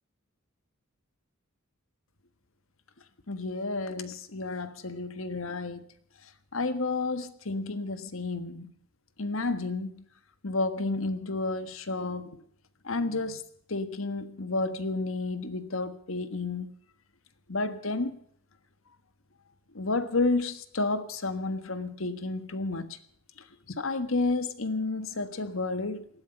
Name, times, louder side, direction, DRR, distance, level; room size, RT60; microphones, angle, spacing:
voice 1, 3.3-5.8 6.5-8.7 9.2-10.0 10.4-12.4 12.8-13.4 13.7-16.7 17.5-18.2 19.7-23.0 23.7-26.1, left 3 dB, 70° left, 12 dB, 1.5 m, -31 dB
19.0 x 13.0 x 5.5 m, 0.64 s
head